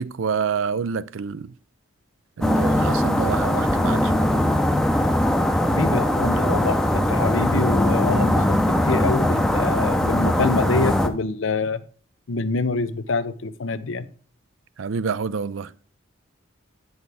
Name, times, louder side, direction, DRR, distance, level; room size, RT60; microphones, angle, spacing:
voice 1, 0.0-1.5 2.4-4.3 14.8-15.7, right 6 dB, 75° right, 0.4 m, -27 dB
sound 1, 2.4-11.1, left 1 dB, 5° left, 0.6 m, -20 dB
voice 2, 5.8-11.8 12.3-14.1, left 3 dB, 75° left, 0.7 m, -26 dB
9.2 x 6.3 x 3.4 m
head